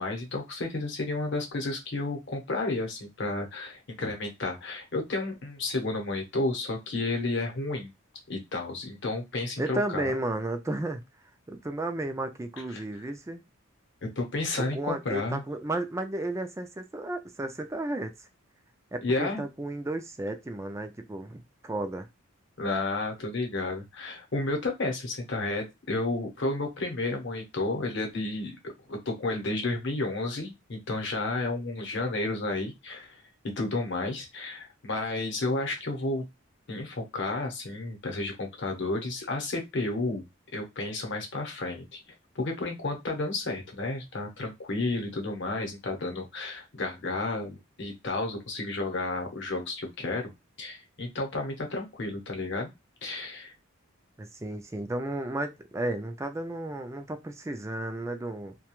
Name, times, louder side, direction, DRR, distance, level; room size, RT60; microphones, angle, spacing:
voice 1, 0.0-7.9 8.3-10.1 12.7-12.8 14.0-15.4 19.0-19.4 22.6-33.2 33.6-36.3 36.7-40.2 40.5-42.0 42.3-50.3 50.6-52.7 53.0-53.5, left 2 dB, 55° left, 0.8 m, -32 dB
voice 2, 9.6-11.0 11.5-13.4 14.6-18.3 18.9-22.1 54.2-58.6, right 2 dB, 15° right, 0.3 m, -33 dB
2.3 x 2.2 x 2.9 m
head